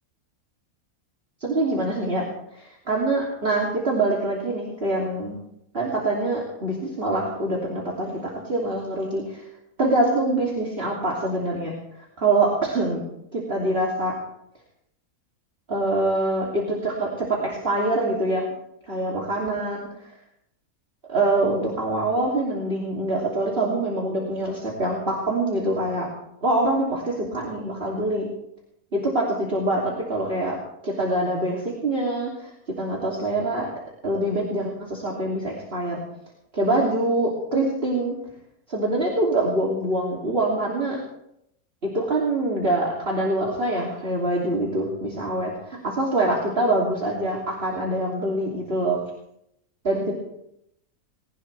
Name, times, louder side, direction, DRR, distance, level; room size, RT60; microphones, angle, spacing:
voice 1, 1.4-2.2 2.5-5.4 5.7-9.4 9.8-11.7 12.2-13.0 13.3-14.1 15.7-18.4 18.9-20.1 21.1-26.1 26.4-28.3 28.9-30.6 30.8-32.5 32.8-33.7 34.0-36.0 36.5-38.2 38.7-41.0 41.8-49.0 49.8-50.2, right 2 dB, 40° right, -4 dB, 3.3 m, -24 dB
20.5 x 19.0 x 3.5 m, 0.78 s
omnidirectional pair, 1.5 m